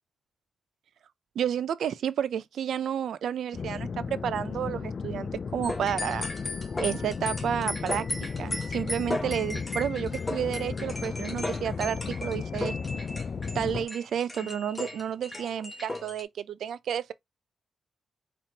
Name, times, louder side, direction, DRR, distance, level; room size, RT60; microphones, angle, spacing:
voice 1, 1.4-6.3 6.8-8.1 8.4-12.7 13.5-17.1, right 9 dB, 80° right, 0.5 m, -31 dB
sound 1, 3.5-13.9, left 5 dB, 40° left, 0.3 m, -35 dB
sound 2, 5.6-16.2, left 2 dB, 15° left, 1.3 m, -36 dB
4.3 x 4.3 x 2.8 m
wide cardioid pair, 150°, 0 cm